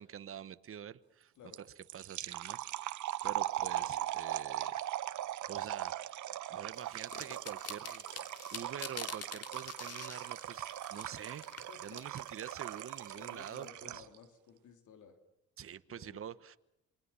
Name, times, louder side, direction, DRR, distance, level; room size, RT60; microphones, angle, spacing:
voice 1, 0.0-1.3 1.9-2.9 3.2-4.8 5.5-8.2 8.5-11.4 11.8-14.0 15.6-16.6, right 9 dB, 45° right, 14 dB, 1.1 m, -47 dB
sound 1, 1.5-14.2, right 13 dB, 75° right, 1.1 m, -39 dB
voice 2, 3.6-4.2 11.7-12.0 13.2-15.2 15.9-16.2, left 6 dB, 75° left, 6 dB, 3.0 m, -56 dB
sound 2, 6.8-13.6, left 7 dB, 55° left, 3.1 m, -48 dB
28.0 x 22.5 x 6.9 m, 0.85 s
cardioid pair, 90°, 30 cm